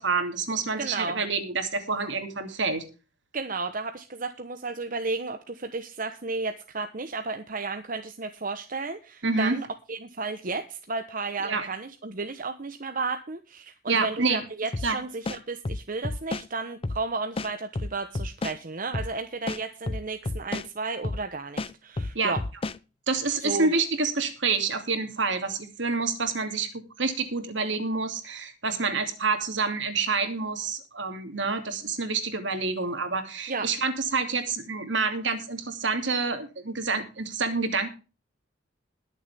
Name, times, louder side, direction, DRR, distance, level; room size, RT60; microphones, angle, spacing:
voice 1, 0.0-2.8 9.2-9.6 11.4-11.7 13.9-14.4 14.8-15.0 22.1-22.4 23.1-26.7 27.0-37.9, right 4 dB, 70° right, 7 dB, 2.6 m, -28 dB
voice 2, 0.8-1.2 3.3-22.4 23.4-23.7 33.5-33.7, right 3 dB, 45° right, 7 dB, 1.0 m, -33 dB
sound 1, 14.7-14.9 15.2-16.5 16.8-17.0 17.4-18.6 18.9-19.1 19.5-20.7 21.0-21.2 21.6-22.8, left 2 dB, 30° left, 0.5 m, -31 dB
21.0 x 7.3 x 3.5 m, 0.33 s
head